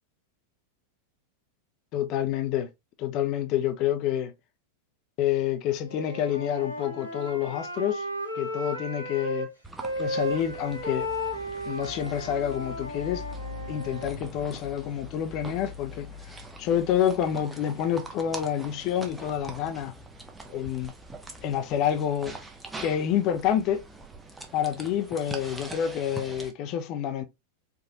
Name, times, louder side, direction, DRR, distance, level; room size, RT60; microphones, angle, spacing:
voice 1, 1.9-2.7 3.0-4.3 5.2-8.1 8.3-9.5 10.0-11.1 11.6-13.2 13.7-19.9 20.5-20.9 21.4-22.3 22.8-23.9 24.5-27.2, left 10 dB, 40° left, 0.6 m, -28 dB
Wind instrument woodwind instrument, 5.9-9.5 9.8-14.1, equal, 80° right, 1.3 m, -34 dB
sound 1, 9.6-26.5, right 1 dB, 10° right, 0.8 m, -43 dB
4.6 x 2.5 x 2.8 m
figure-of-eight pair, 90°, 0 cm